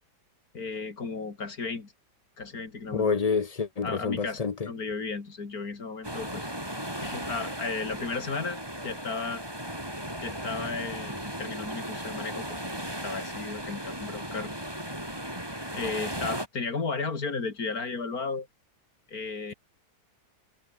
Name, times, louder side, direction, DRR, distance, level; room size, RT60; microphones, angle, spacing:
voice 1, 0.5-1.9 2.4-3.2 3.8-6.5 7.0-9.4 10.2-12.4 12.7-14.5 15.7-18.5 19.1-19.5, left 4 dB, 60° left, 3.2 m, -34 dB
voice 2, 2.9-4.7, left 5 dB, 40° left, 0.5 m, -28 dB
sound 1, 6.0-16.5, equal, 15° right, 7.2 m, -36 dB
omnidirectional pair, 1.8 m